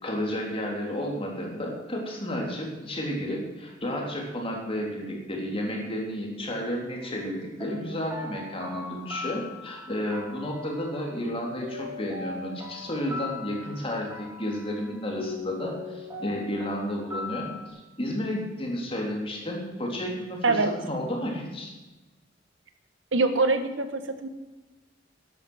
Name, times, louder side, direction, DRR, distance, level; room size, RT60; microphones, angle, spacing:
voice 1, 0.0-21.7, equal, 30° left, 0 dB, 3.5 m, -32 dB
sound 1, 7.0-17.7, left 3 dB, 15° right, 3.6 m, -40 dB
voice 2, 23.1-24.3, right 3 dB, 75° right, 9 dB, 1.3 m, -24 dB
13.5 x 11.0 x 6.3 m, 1.1 s
head